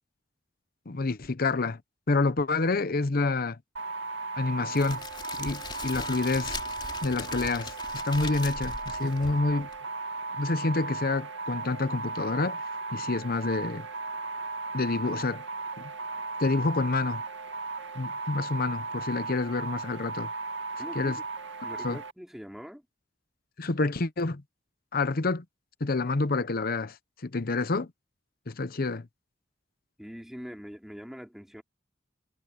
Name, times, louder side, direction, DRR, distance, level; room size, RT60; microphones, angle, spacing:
voice 1, 0.9-1.8 2.1-3.6 4.4-5.0 5.4-6.6 7.0-7.7 8.0-9.7 10.4-12.6 12.9-13.9 14.7-15.4 16.4-17.2 17.9-20.3 20.9-21.2 21.8-22.0 23.6-24.4 24.9-25.4 25.8-26.9 27.2-27.9 28.5-29.1, left 3 dB, 55° left, 0.8 m, -28 dB
sound 1, 3.8-22.1, right 3 dB, 85° right, 2.3 m, -36 dB
Crackle, 4.7-9.8, left 3 dB, 25° left, 3.1 m, -39 dB
voice 2, 20.8-21.2 21.6-22.8 30.0-31.6, equal, ahead, 3.7 m, -43 dB
head